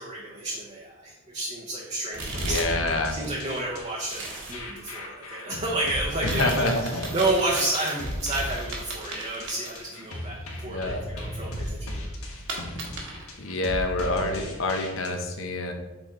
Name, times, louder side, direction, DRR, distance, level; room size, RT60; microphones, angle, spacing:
voice 1, 0.0-2.5 3.1-4.2 4.5-6.7 7.1-12.1, right 2 dB, 30° right, -3 dB, 0.8 m, -30 dB
sound 1, 2.1-15.1, left 1 dB, 90° left, 1.4 m, -36 dB
sound 2, 2.1-2.9 3.2-4.6 6.2-10.2 10.5-10.6 12.5-13.3, right 3 dB, 55° right, 1.4 m, -37 dB
voice 2, 2.4-3.2 6.2-7.1 10.7-11.0 13.4-15.7, left 2 dB, 65° left, 4 dB, 0.8 m, -27 dB
6.5 x 4.3 x 3.7 m, 1.1 s
head